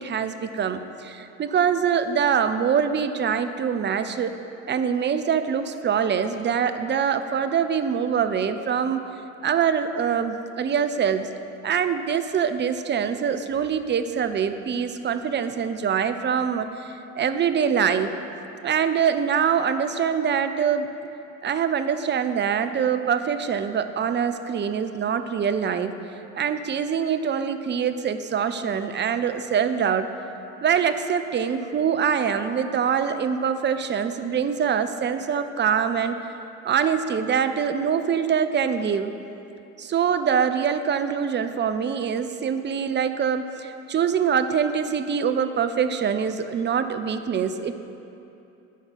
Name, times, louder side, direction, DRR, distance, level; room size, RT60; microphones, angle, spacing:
voice 1, 0.0-4.3 4.7-9.1 9.4-11.3 11.6-18.1 18.6-20.9 21.4-26.0 26.4-30.1 30.6-36.2 36.6-39.1 39.8-47.8, right 7 dB, 30° right, 10 dB, 0.5 m, -24 dB
11.5 x 4.3 x 5.9 m, 2.8 s
hypercardioid pair, 60°, 37 cm